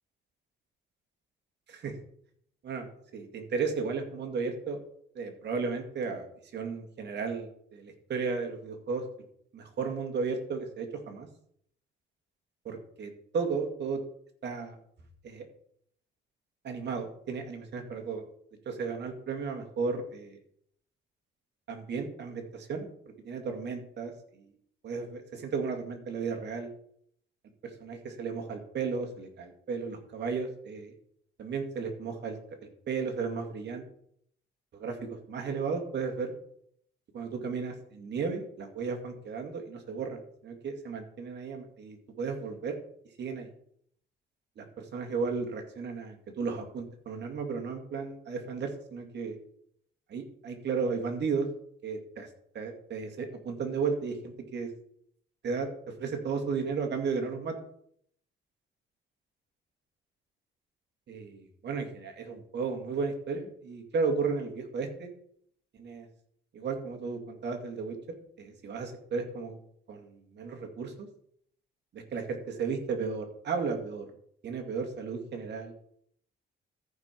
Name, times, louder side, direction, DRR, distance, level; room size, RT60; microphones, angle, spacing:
voice 1, 2.6-4.8 5.1-9.0 9.5-11.3 12.6-14.0 14.4-14.8 15.2-15.4 16.6-18.2 18.7-20.4 21.7-22.9 23.2-24.5 24.8-26.7 27.6-30.9 31.4-32.4 32.9-33.8 34.7-36.3 37.1-42.8 43.2-43.5 44.6-49.4 50.1-51.5 51.8-52.3 52.5-54.7 55.4-55.7 56.0-57.6 61.1-65.1 65.8-66.1 66.5-68.0 68.4-69.6 69.9-71.1 71.9-74.1 74.4-75.7, right 5 dB, 60° right, 3 dB, 2.3 m, -34 dB
14.0 x 5.5 x 4.5 m, 0.67 s
cardioid pair, 90°, 20 cm